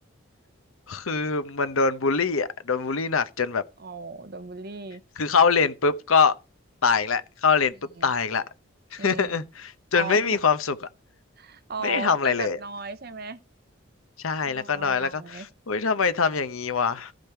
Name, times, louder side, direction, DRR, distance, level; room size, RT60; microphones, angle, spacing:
voice 1, 0.9-3.6 5.2-6.3 6.8-7.7 8.0-8.4 8.9-10.8 11.8-12.6 14.2-17.1, left 5 dB, 80° left, 0.8 m, -23 dB
voice 2, 3.8-5.0 8.0-8.1 9.0-9.4 9.9-10.4 11.4-13.4 14.4-15.5, right 4 dB, 50° right, 0.8 m, -36 dB
14.0 x 5.2 x 4.5 m
head